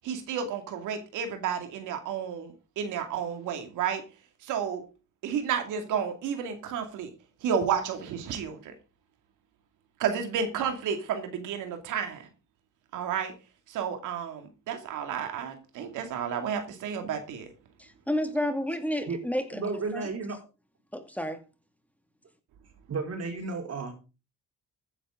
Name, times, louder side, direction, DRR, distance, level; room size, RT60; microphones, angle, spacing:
voice 1, 0.0-4.0 4.4-4.8 5.2-7.1 7.4-8.7 10.0-12.3 12.9-13.3 13.7-17.5, right 7 dB, 90° right, 6 dB, 2.4 m, -31 dB
voice 2, 17.8-20.1 20.9-21.4, left 1 dB, 5° left, 7 dB, 2.2 m, -31 dB
voice 3, 19.5-20.4 22.9-24.0, right 4 dB, 55° right, 3 dB, 5.0 m, -33 dB
14.5 x 9.8 x 3.8 m, 0.31 s
cardioid pair, 90°, 30 cm